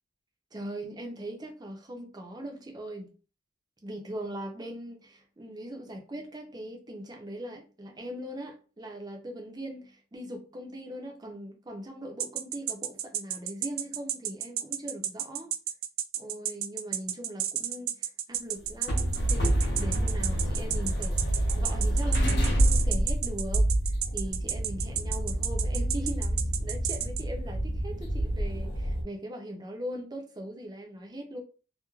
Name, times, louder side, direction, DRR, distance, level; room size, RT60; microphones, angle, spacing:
voice 1, 0.5-3.1 3.8-15.5 16.2-23.7 24.1-31.4, right 1 dB, 20° right, 0.5 m, -40 dB
sound 1, 12.2-27.2, right 11 dB, 90° right, 0.3 m, -31 dB
sound 2, 18.6-29.0, right 1 dB, 55° left, 0.8 m, -27 dB
3.0 x 2.1 x 2.2 m
head